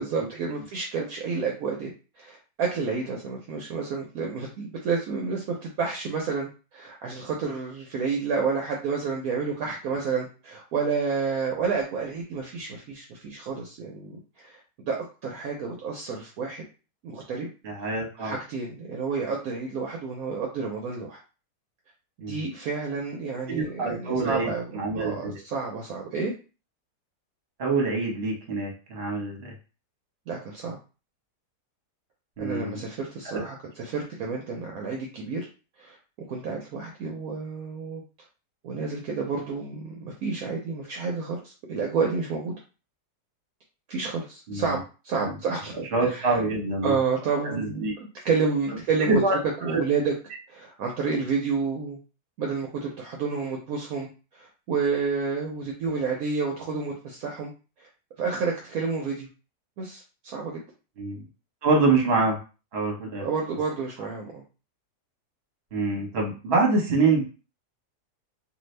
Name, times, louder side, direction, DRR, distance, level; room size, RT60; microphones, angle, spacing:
voice 1, 0.0-1.9 2.2-16.7 17.0-17.5 18.2-21.2 22.3-26.3 30.3-30.8 32.4-35.5 35.8-36.0 36.3-38.0 38.6-42.5 43.9-46.4 46.8-50.1 50.5-52.0 52.4-54.1 54.3-57.5 57.8-57.9 58.2-59.3 59.8-60.6 63.2-64.4, right 5 dB, 70° right, 0 dB, 1.0 m, -30 dB
voice 2, 17.6-18.3 22.2-22.4 23.5-25.4 27.6-29.5 32.4-32.8 33.3-33.4 44.5-44.8 45.2-45.3 45.7-47.0 47.4-47.9 49.1-49.4 49.7-49.8 61.0-61.2 61.6-62.4 62.7-63.2 65.7-67.2, right 3 dB, 45° right, 1 dB, 1.1 m, -25 dB
2.6 x 2.6 x 3.2 m, 0.33 s
omnidirectional pair, 1.7 m